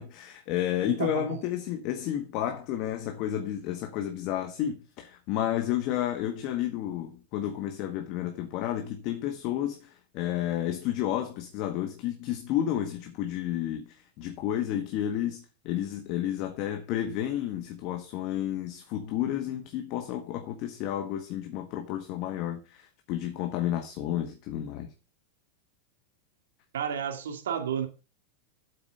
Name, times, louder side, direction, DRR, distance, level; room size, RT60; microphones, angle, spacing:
voice 1, 0.0-24.9, left 11 dB, 50° left, 1.6 m, -31 dB
voice 2, 26.7-27.9, right 8 dB, 90° right, 2.1 m, -31 dB
8.6 x 8.0 x 5.6 m
supercardioid pair, 130°, 0 cm